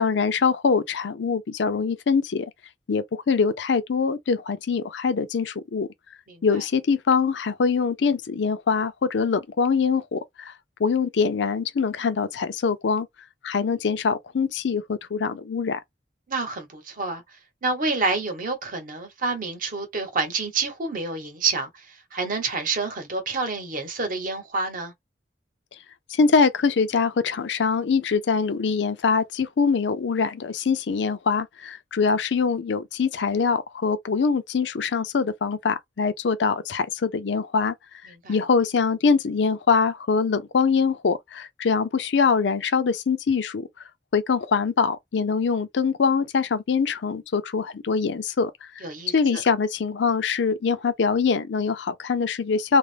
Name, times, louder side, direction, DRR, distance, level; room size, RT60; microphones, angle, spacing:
voice 1, 0.0-2.5 2.9-5.9 6.4-10.5 10.8-13.1 13.4-15.8 26.1-37.7 38.3-43.7 44.1-48.7 49.1-52.8, left 5 dB, 70° left, 0.5 m, -23 dB
voice 2, 16.3-17.2 17.6-24.9 38.1-38.4 48.8-49.1, right 3 dB, 50° right, 0.9 m, -28 dB
2.4 x 2.1 x 3.2 m
head